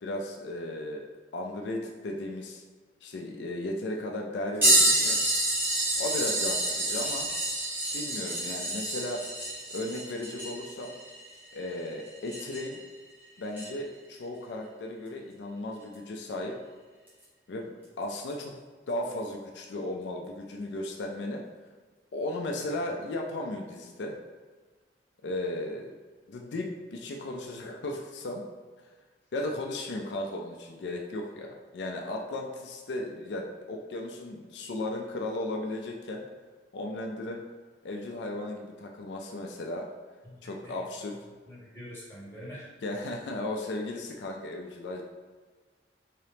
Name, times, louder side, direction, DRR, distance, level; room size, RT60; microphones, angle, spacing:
voice 1, 0.0-1.0 1.3-2.6 3.0-5.2 6.0-7.3 7.9-9.2 9.7-10.9 11.5-12.8 13.4-16.6 17.5-18.5 18.9-21.4 22.1-24.2 25.2-25.9 26.3-28.4 29.3-36.2 36.7-37.4 37.8-39.9 40.4-41.2 42.8-45.0, left 1 dB, 80° left, 1 dB, 0.4 m, -35 dB
sound 1, 4.6-12.8 13.5-13.7 15.9-16.0 17.1-17.2 18.3-18.4, right 1 dB, 10° right, 1.2 m, -28 dB
voice 2, 40.2-40.8 41.5-42.7, equal, 15° left, -9 dB, 1.4 m, -45 dB
3.7 x 2.8 x 3.4 m, 1.4 s
head